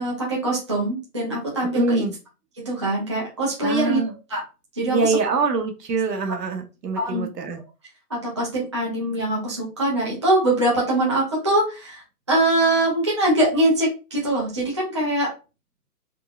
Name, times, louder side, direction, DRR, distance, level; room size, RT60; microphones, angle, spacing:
voice 1, 0.0-2.0 2.7-4.0 4.3-4.4 4.7-5.2 7.0-7.2 8.2-12.0 12.3-15.3, right 1 dB, 20° right, -5 dB, 0.5 m, -22 dB
voice 2, 1.7-2.1 3.6-4.1 4.9-7.6, right 3 dB, 80° right, 5 dB, 1.0 m, -24 dB
3.6 x 2.0 x 2.3 m, 0.30 s
hypercardioid pair, 155°, 48 cm